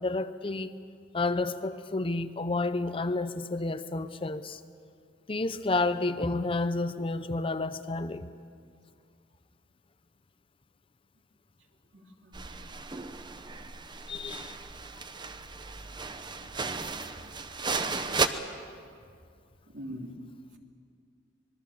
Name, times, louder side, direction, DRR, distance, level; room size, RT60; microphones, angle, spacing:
voice 1, 0.0-0.7 1.1-4.6 5.3-8.3 14.1-14.5, left 3 dB, 30° left, 11 dB, 0.7 m, -30 dB
voice 2, 11.9-12.6 13.3-13.4 16.4-17.0 19.7-20.1, equal, 65° right, 1 dB, 2.9 m, -45 dB
sound 1, 12.3-18.3, right 4 dB, 25° right, 0.8 m, -34 dB
25.0 x 21.0 x 7.2 m, 2.2 s
head